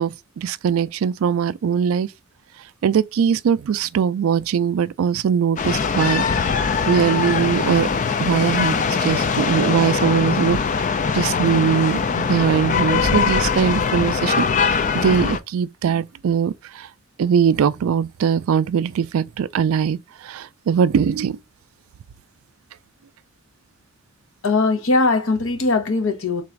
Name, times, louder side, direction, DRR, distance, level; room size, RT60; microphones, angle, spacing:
voice 1, 0.0-2.1 2.8-6.2 6.9-7.9 8.2-16.9 17.2-21.4, right 7 dB, 65° right, 0.3 m, -21 dB
sound 1, 5.6-15.4, left 5 dB, 35° left, 0.3 m, -21 dB
voice 2, 24.4-26.4, left 3 dB, 65° left, 1.0 m, -20 dB
3.9 x 2.5 x 4.4 m
head